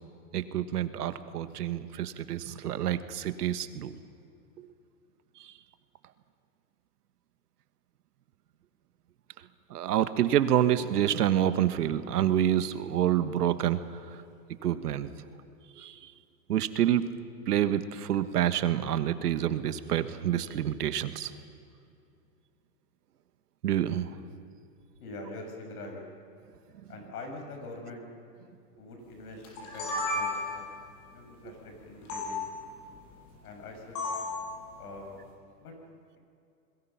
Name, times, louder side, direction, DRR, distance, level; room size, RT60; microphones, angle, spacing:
voice 1, 0.3-3.9 9.7-13.8 14.6-15.1 15.8-16.0 16.5-17.1 17.5-21.3 23.6-24.1, right 11 dB, 75° right, 12 dB, 1.5 m, -27 dB
voice 2, 25.0-26.0 26.9-28.0 28.8-30.6 31.1-32.4 33.4-34.0 34.8-35.2 35.6-35.7, left 2 dB, 70° left, 2 dB, 7.1 m, -44 dB
sound 1, 29.4-30.7 32.1-32.3 33.9-34.4, left 2 dB, 40° left, 7.3 m, -32 dB
29.0 x 21.5 x 5.8 m, 2.5 s
hypercardioid pair, 135°, 47 cm